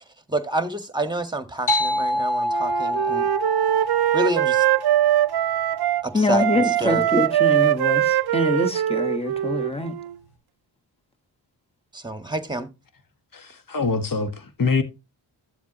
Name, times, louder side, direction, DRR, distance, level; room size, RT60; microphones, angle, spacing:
voice 1, 0.3-3.3 4.1-4.6 6.0-6.4 6.8-7.0 11.9-12.7, right 1 dB, 10° right, 1.5 m, -28 dB
sound 1, 1.7-6.6, left 1 dB, 85° left, 2.7 m, -27 dB
Wind instrument woodwind instrument, 2.5-6.0 6.4-10.1, right 12 dB, 55° right, 0.5 m, -22 dB
voice 2, 6.1-9.9, left 2 dB, 10° left, 1.4 m, -24 dB
voice 3, 13.3-14.8, left 4 dB, 45° left, 1.6 m, -24 dB
12.5 x 7.2 x 3.0 m
cardioid pair, 45°, 47 cm